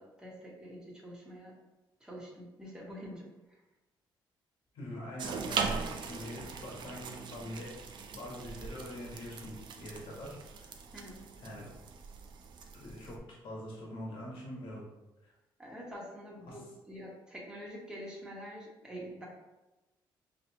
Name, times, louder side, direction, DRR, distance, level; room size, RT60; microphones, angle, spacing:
voice 1, 0.0-1.5 2.0-3.6 10.9-11.3 15.6-19.3, equal, 10° right, -4 dB, 1.4 m, -46 dB
voice 2, 4.7-7.8 8.1-10.7 11.4-11.7 12.7-14.8 15.2-15.3 16.5-16.6, left 1 dB, 80° left, -3 dB, 1.4 m, -44 dB
sound 1, 5.2-13.2, right 5 dB, 60° right, 0.5 m, -40 dB
5.0 x 3.0 x 2.9 m, 1.1 s
cardioid pair, 105°, 9 cm